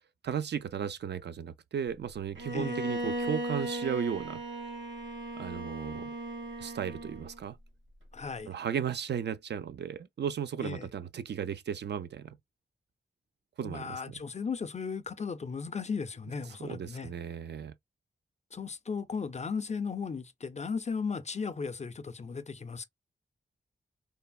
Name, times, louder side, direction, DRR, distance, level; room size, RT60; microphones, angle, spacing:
voice 1, 0.2-4.4 5.3-6.1 6.6-7.6 8.5-12.4 13.6-14.1 16.6-17.7, right 8 dB, 60° right, 0.4 m, -35 dB
Bowed string instrument, 2.4-7.4, right 1 dB, 80° right, 1.1 m, -37 dB
voice 2, 8.1-8.5 10.6-10.9 13.6-17.1 18.5-22.8, left 5 dB, 35° left, 0.4 m, -36 dB
3.3 x 2.0 x 2.3 m
wide cardioid pair, 80°, 20 cm